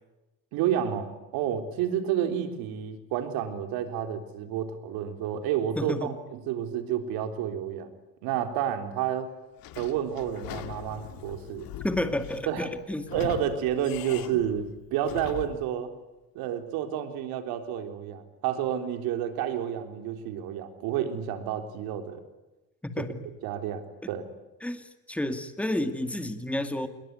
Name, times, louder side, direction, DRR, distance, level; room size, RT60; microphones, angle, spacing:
voice 1, 0.5-6.1 6.5-7.9 8.2-9.3 9.8-11.7 12.5-12.7 13.1-15.9 16.4-22.2 23.4-24.3, right 10 dB, 85° right, 7 dB, 3.8 m, -30 dB
voice 2, 5.8-6.1 11.8-13.1 22.8-23.2 24.6-26.9, left 1 dB, 5° left, 8 dB, 2.3 m, -30 dB
Sliding door / Squeak, 9.6-15.7, left 11 dB, 70° left, 2.2 m, -41 dB
27.5 x 21.5 x 9.6 m, 1.0 s
cardioid pair, 120°, 36 cm